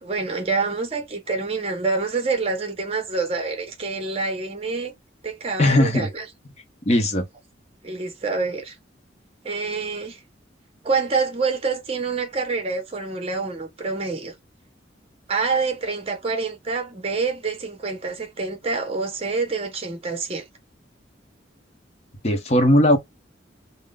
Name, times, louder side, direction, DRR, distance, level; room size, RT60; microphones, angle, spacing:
voice 1, 0.0-4.9 5.2-6.2 7.8-8.8 9.4-10.2 10.8-14.3 15.3-20.5, right 4 dB, 30° right, 0.8 m, -27 dB
voice 2, 5.6-6.1 6.9-7.3 22.2-23.0, left 1 dB, 35° left, 0.8 m, -18 dB
3.7 x 2.1 x 2.3 m
head